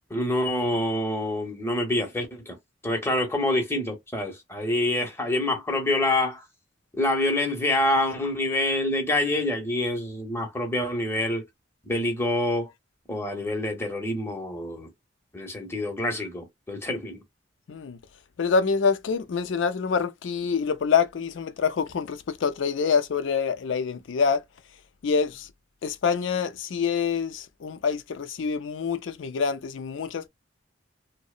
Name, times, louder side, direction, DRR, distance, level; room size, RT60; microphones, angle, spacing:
voice 1, 0.1-2.6 2.8-6.4 6.9-11.4 11.9-12.7 13.1-14.9 15.3-17.2, left 1 dB, 15° left, 0.7 m, -26 dB
voice 2, 17.7-18.0 18.4-24.4 25.0-25.5 25.8-30.3, left 5 dB, 75° left, 0.4 m, -26 dB
2.7 x 2.0 x 2.3 m
head